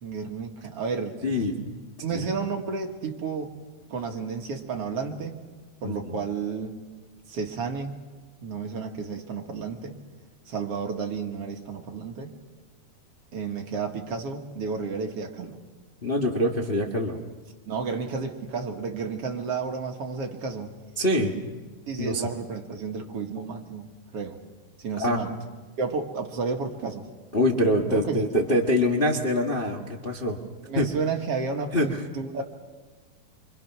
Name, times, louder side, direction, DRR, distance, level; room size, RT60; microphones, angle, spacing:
voice 1, 0.0-1.2 2.0-3.5 3.9-5.4 5.8-6.7 7.3-7.9 8.4-10.0 10.5-12.3 13.3-15.6 17.7-20.8 21.9-24.4 24.8-25.3 25.8-27.1 27.9-28.3 30.6-32.4, right 5 dB, 50° right, 3 dB, 2.1 m, -32 dB
voice 2, 1.2-1.5 2.1-2.3 5.8-6.1 16.0-17.2 21.0-21.3 22.0-22.2 25.0-25.2 27.3-30.4 30.7-30.9 31.7-32.0, left 1 dB, 75° left, 0 dB, 0.5 m, -24 dB
27.5 x 25.0 x 6.0 m, 1.3 s
omnidirectional pair, 4.2 m